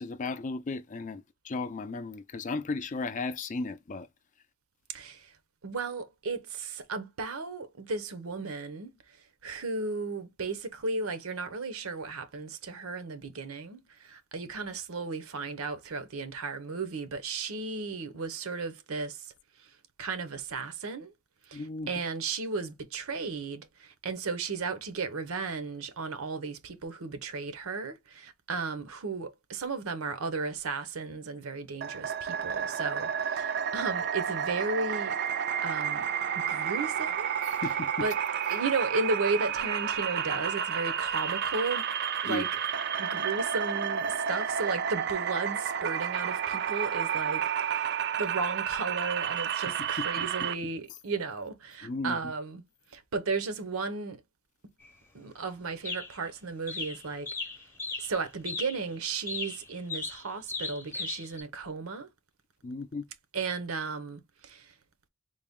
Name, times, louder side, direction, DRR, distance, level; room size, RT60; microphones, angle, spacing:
voice 1, 0.0-4.1 21.5-21.9 37.6-37.9 42.3-42.4 50.2-50.3 51.8-52.2 62.6-63.0, left 3 dB, 35° left, 0.4 m, -35 dB
voice 2, 4.9-5.4 5.6-21.1 21.4-35.1 35.6-36.1 36.3-37.3 37.6-38.2 38.5-41.9 42.2-42.5 43.0-52.6 52.9-54.2 55.1-57.3 58.0-62.1 63.3-64.8, right 4 dB, 75° right, 0.7 m, -35 dB
sound 1, 31.8-50.5, right 8 dB, 50° right, 0.4 m, -31 dB
sound 2, 54.8-54.9 55.8-56.3 56.7-58.2 58.4-58.8 59.3-61.4, left 3 dB, 10° left, 0.7 m, -36 dB
3.9 x 2.2 x 3.5 m
head